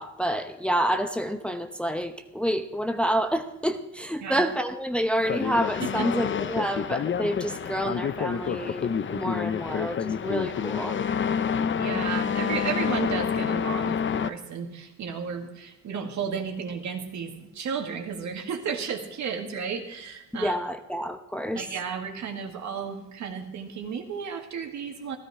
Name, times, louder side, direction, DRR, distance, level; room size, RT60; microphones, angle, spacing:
voice 1, 0.0-11.0 20.3-21.6, equal, 5° left, 6 dB, 0.9 m, -28 dB
sound 1, 5.2-14.3, left 7 dB, 40° left, 0.7 m, -28 dB
voice 2, 11.8-20.6 21.6-25.2, right 6 dB, 70° right, 4 dB, 2.0 m, -33 dB
15.0 x 13.0 x 4.9 m, 0.96 s
cardioid pair, 90°, 30 cm